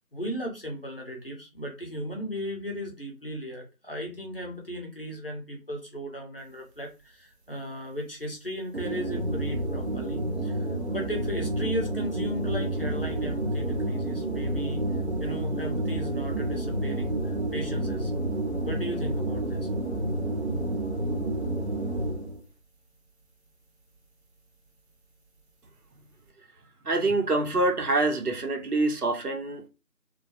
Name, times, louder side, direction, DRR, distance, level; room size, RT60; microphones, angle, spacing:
voice 1, 0.1-14.8 15.2-18.1 18.6-19.7, equal, 40° left, 0.6 m, -36 dB
sound 1, 8.7-22.4, right 1 dB, 50° right, 0.6 m, -29 dB
voice 2, 26.8-29.7, right 2 dB, 90° right, 0.8 m, -26 dB
2.2 x 2.0 x 2.7 m
figure-of-eight pair, 170°, 44 cm